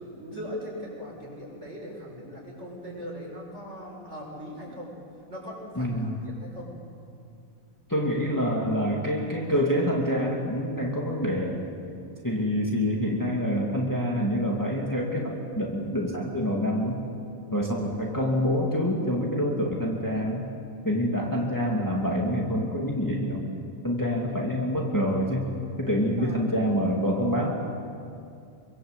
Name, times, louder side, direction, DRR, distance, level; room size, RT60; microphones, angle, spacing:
voice 1, 0.0-4.9 5.3-6.1 6.4-6.7 26.2-26.4, equal, 50° right, -3 dB, 7.7 m, -39 dB
voice 2, 5.8-6.2 7.9-11.6 12.2-17.0 17.5-20.5 20.8-23.4 23.8-25.5 25.8-27.5, equal, 10° left, -2 dB, 2.7 m, -26 dB
27.0 x 23.5 x 8.3 m, 2.4 s
omnidirectional pair, 1.5 m